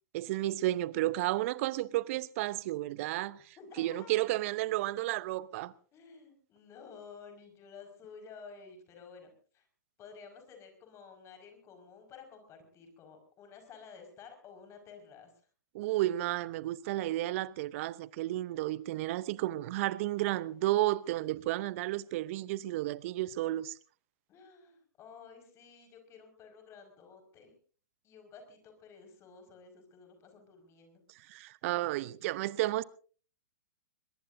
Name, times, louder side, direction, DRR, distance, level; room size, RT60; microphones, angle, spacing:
voice 1, 0.1-5.7 15.7-23.8 31.3-32.8, right 16 dB, 45° right, 0.8 m, -32 dB
voice 2, 3.6-4.1 4.4-4.9 5.9-9.7 10.0-15.3 24.3-27.6 28.0-31.0, left 5 dB, 30° left, 5.2 m, -53 dB
22.5 x 21.5 x 2.7 m
figure-of-eight pair, 110°, 10 cm